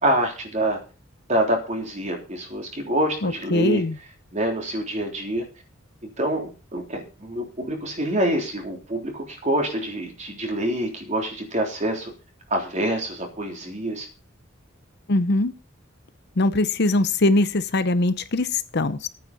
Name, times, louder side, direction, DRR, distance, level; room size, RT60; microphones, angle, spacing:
voice 1, 0.0-0.8 1.3-3.8 4.3-5.5 6.0-12.1 12.5-14.1, right 1 dB, 35° right, 2 dB, 3.4 m, -26 dB
voice 2, 3.2-4.0 15.1-15.5 16.4-19.1, left 2 dB, 55° left, 13 dB, 0.8 m, -22 dB
11.5 x 9.2 x 5.3 m, 0.34 s
head